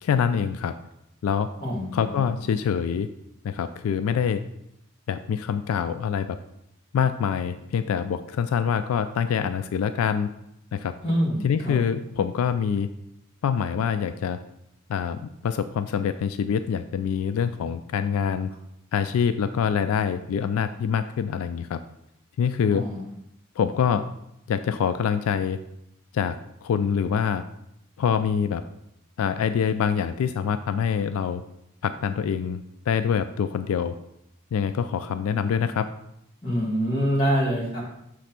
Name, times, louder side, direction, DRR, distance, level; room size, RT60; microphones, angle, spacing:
voice 1, 0.0-0.7 1.2-1.5 1.9-3.1 3.4-4.4 5.1-6.4 6.9-10.3 10.7-11.0 11.4-12.9 13.4-14.4 14.9-18.5 18.9-21.8 22.4-22.9 23.6-24.1 24.5-25.6 26.1-27.4 28.0-28.6 29.2-31.4 31.8-33.9 34.5-35.9, left 7 dB, 80° left, 11 dB, 0.3 m, -25 dB
voice 2, 1.6-2.2 11.0-11.8 22.7-23.1 36.4-37.8, equal, 25° left, -4 dB, 1.9 m, -25 dB
6.3 x 3.3 x 5.8 m, 0.81 s
head